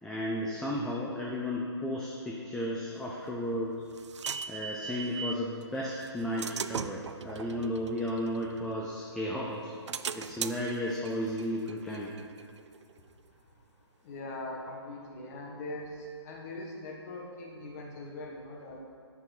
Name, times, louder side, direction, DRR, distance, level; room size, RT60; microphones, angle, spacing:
voice 1, 0.0-3.8 4.5-9.7 10.2-12.2, left 1 dB, 5° left, -3 dB, 0.5 m, -34 dB
sound 1, 3.3-5.5 6.0-9.1 9.5-13.0, right 6 dB, 80° right, 0.4 m, -40 dB
voice 2, 14.0-15.9 16.2-18.8, left 2 dB, 35° left, -1 dB, 1.5 m, -41 dB
11.0 x 6.0 x 4.1 m, 2.2 s
hypercardioid pair, 145°, 15 cm